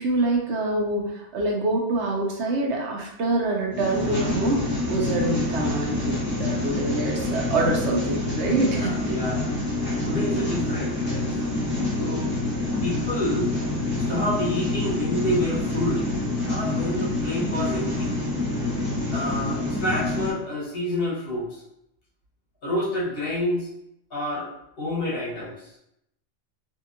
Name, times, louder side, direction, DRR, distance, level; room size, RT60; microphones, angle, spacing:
voice 1, 0.0-9.1 10.1-10.4, right 2 dB, 70° right, -1 dB, 0.9 m, -26 dB
sound 1, 3.7-20.3, left 2 dB, 10° left, 1.0 m, -27 dB
voice 2, 8.7-9.6 10.1-11.4 12.0-12.3 12.8-13.5 14.1-16.0 16.4-18.1 19.1-21.6 22.6-23.7 24.1-24.5 24.8-25.7, left 1 dB, 55° left, -6 dB, 1.1 m, -28 dB
2.7 x 2.7 x 2.5 m, 0.79 s
omnidirectional pair, 1.3 m